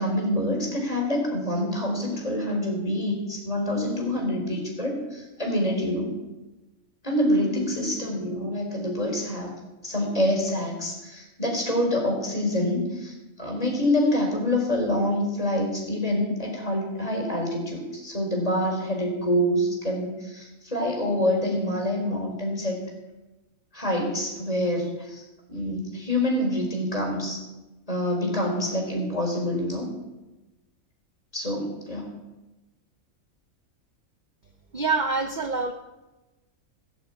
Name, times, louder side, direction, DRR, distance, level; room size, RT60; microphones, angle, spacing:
voice 1, 0.0-6.1 7.0-9.5 9.8-22.8 23.7-25.2 25.5-27.4 27.9-29.9 31.3-32.1, left 1 dB, 25° left, -1 dB, 4.3 m, -26 dB
voice 2, 34.7-35.7, right 4 dB, 40° right, 7 dB, 0.8 m, -25 dB
17.5 x 7.2 x 8.6 m, 1.1 s
omnidirectional pair, 1.5 m